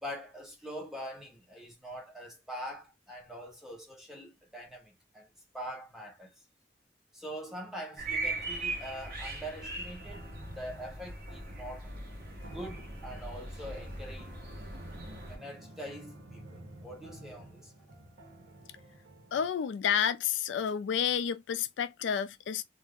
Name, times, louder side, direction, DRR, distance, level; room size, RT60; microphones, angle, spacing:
voice 1, 0.0-5.3 5.5-6.3 7.1-10.3 10.6-11.9 12.5-14.4 15.3-17.7, equal, ahead, 0.8 m, -43 dB
sound 1, 8.0-15.4, right 2 dB, 50° right, 1.0 m, -40 dB
Ghosts play Piano, 10.0-19.5, right 1 dB, 90° right, 0.9 m, -51 dB
voice 2, 19.3-22.6, left 8 dB, 80° left, 0.3 m, -30 dB
2.5 x 2.0 x 3.4 m
head